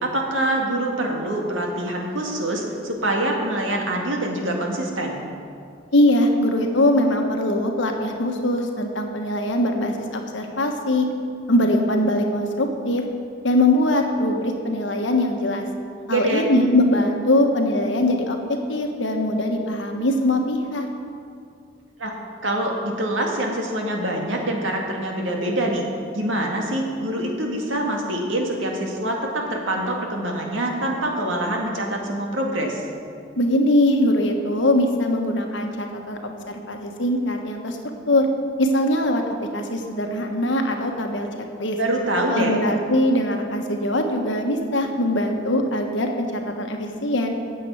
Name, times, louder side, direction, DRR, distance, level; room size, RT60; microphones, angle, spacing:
voice 1, 0.0-5.2 16.1-16.4 22.0-22.1 22.4-25.8 26.1-32.8 41.8-42.6, right 1 dB, 90° right, 1 dB, 2.0 m, -25 dB
voice 2, 5.9-11.1 11.5-13.0 13.4-15.6 16.1-20.9 33.3-37.8 38.1-38.3 38.6-39.2 39.5-41.8 42.3-47.4, left 1 dB, 70° left, 3 dB, 1.3 m, -22 dB
9.6 x 7.7 x 8.5 m, 2.4 s
head